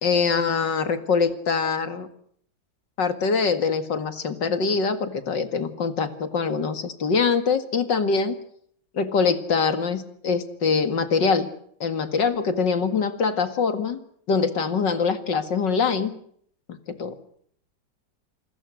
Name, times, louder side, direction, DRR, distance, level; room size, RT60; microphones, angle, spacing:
voice 1, 0.0-2.1 3.0-8.4 8.9-11.5 11.8-14.0 14.3-16.1 16.7-17.1, left 5 dB, 75° left, 9 dB, 2.6 m, -24 dB
28.0 x 21.0 x 6.4 m, 0.64 s
omnidirectional pair, 1.9 m